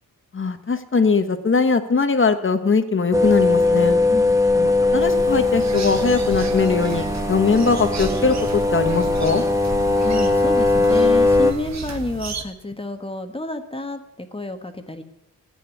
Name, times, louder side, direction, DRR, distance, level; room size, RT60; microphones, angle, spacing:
voice 1, 0.3-4.0 4.5-9.4, left 4 dB, 35° left, 9 dB, 1.3 m, -21 dB
sound 1, 3.1-11.5, left 2 dB, 10° right, 1.5 m, -19 dB
voice 2, 4.1-4.4 10.0-15.0, left 2 dB, 15° left, 6 dB, 1.4 m, -30 dB
sound 2, 5.0-12.4, right 5 dB, 50° right, 1.6 m, -35 dB
15.0 x 9.2 x 9.3 m, 0.82 s
wide cardioid pair, 140°, 35 cm